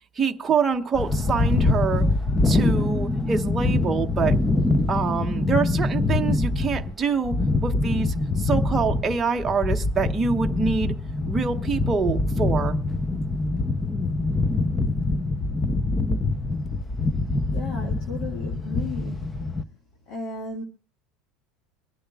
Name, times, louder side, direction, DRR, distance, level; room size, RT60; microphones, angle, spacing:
voice 1, 0.2-2.0 2.4-4.4 4.9-7.3 7.6-10.9 11.3-12.8, right 5 dB, 15° right, 0.9 m, -25 dB
sound 1, 0.9-19.6, left 2 dB, 15° left, 0.6 m, -24 dB
voice 2, 17.5-19.3 20.1-20.6, left 3 dB, 55° left, 1.8 m, -34 dB
25.5 x 10.0 x 2.3 m
supercardioid pair, 150°, 0 cm